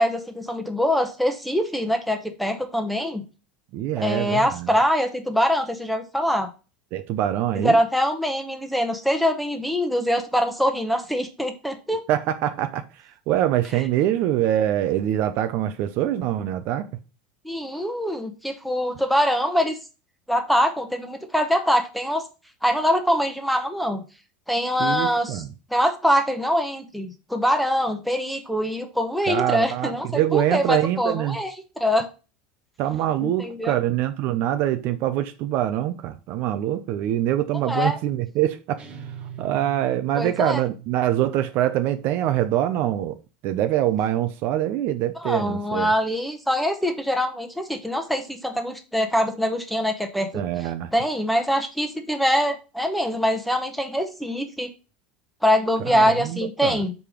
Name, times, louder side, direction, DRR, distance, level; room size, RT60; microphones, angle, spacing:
voice 1, 0.0-3.2 4.0-6.5 7.5-12.0 17.4-19.8 20.3-22.2 22.6-24.0 24.5-25.4 25.7-32.1 33.2-33.8 37.7-38.0 40.1-40.6 45.2-50.4 50.9-54.7 55.4-56.9, equal, ahead, 1.0 m, -23 dB
voice 2, 3.7-4.7 6.9-7.8 12.1-12.8 13.3-16.9 24.8-25.5 29.3-31.4 32.8-38.8 39.4-45.9 50.3-50.9 55.8-56.8, right 12 dB, 50° right, 0.6 m, -24 dB
sound 1, 38.8-41.3, right 9 dB, 25° right, 1.2 m, -40 dB
5.4 x 4.8 x 5.0 m
supercardioid pair, 135°, 5 cm